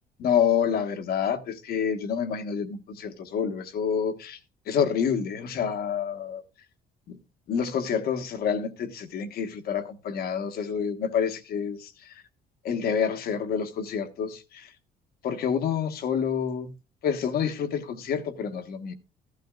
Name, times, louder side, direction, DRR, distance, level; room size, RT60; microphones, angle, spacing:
voice 1, 0.2-4.4 4.7-6.4 7.1-7.2 7.5-12.1 12.6-14.7 15.2-16.7 17.0-18.9, left 7 dB, 65° left, 1.4 m, -28 dB
15.0 x 12.0 x 2.4 m
cardioid pair, 110°, 17 cm